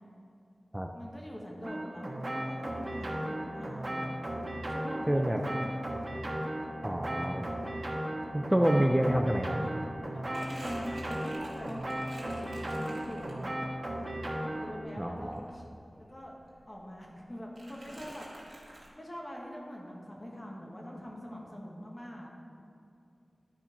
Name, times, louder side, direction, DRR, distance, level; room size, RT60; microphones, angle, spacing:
voice 1, 0.9-4.2 4.7-5.8 10.1-13.5 14.5-15.7 16.0-16.3 16.7-18.3 18.9-22.3, equal, 30° left, -2 dB, 1.6 m, -44 dB
sound 1, 1.6-14.8, right 1 dB, 50° right, 1.4 m, -36 dB
voice 2, 5.1-5.4 6.8-7.4 8.3-9.7 15.0-15.4, right 1 dB, 15° right, 3 dB, 0.5 m, -27 dB
Crumpling crinkling, 9.6-13.7 14.1-16.2 16.5-17.2 17.5-18.9, right 1 dB, 85° right, 1.8 m, -51 dB
11.5 x 4.4 x 5.2 m, 2.5 s
wide cardioid pair, 60°, 0 cm